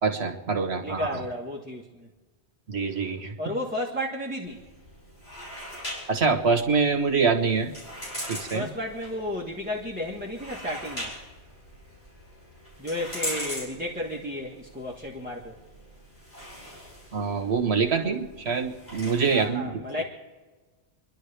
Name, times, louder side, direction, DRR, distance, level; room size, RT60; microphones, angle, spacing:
voice 1, 0.0-1.1 2.7-3.3 6.1-7.7 8.3-8.7 17.1-19.8, right 5 dB, 70° right, 3 dB, 1.6 m, -25 dB
voice 2, 0.8-2.1 3.4-4.6 8.5-11.1 12.8-15.6 19.3-20.0, left 1 dB, 10° right, -2 dB, 1.4 m, -33 dB
sound 1, 4.4-19.4, equal, 65° left, 5.7 m, -41 dB
29.0 x 11.5 x 3.4 m, 1.3 s
omnidirectional pair, 1.1 m